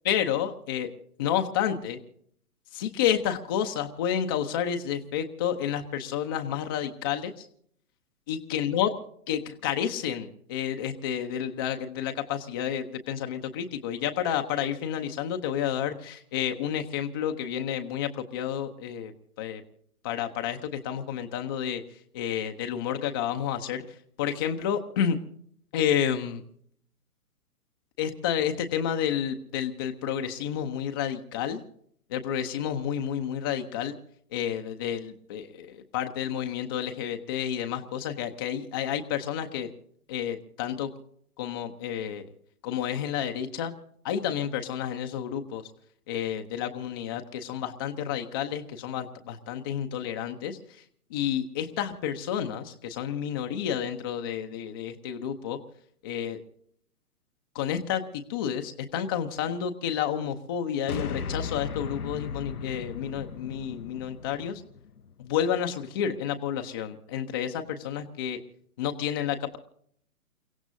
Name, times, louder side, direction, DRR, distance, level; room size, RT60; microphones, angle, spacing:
voice 1, 0.0-0.9 1.2-2.0 2.7-7.5 8.3-8.9 9.3-19.1 19.4-19.6 20.0-21.8 22.1-25.2 25.7-26.4 28.0-31.7 32.1-34.0 34.3-39.7 40.1-40.9 41.4-42.3 42.6-43.7 44.0-45.6 46.1-50.8 51.1-55.6 56.0-56.4 57.5-64.6 65.2-68.4 68.8-69.6, left 9 dB, 15° left, 6 dB, 0.6 m, -30 dB
sound 1, 60.9-65.3, left 5 dB, 80° left, 0.8 m, -37 dB
29.5 x 16.5 x 2.6 m, 0.65 s
figure-of-eight pair, 125°, 45 cm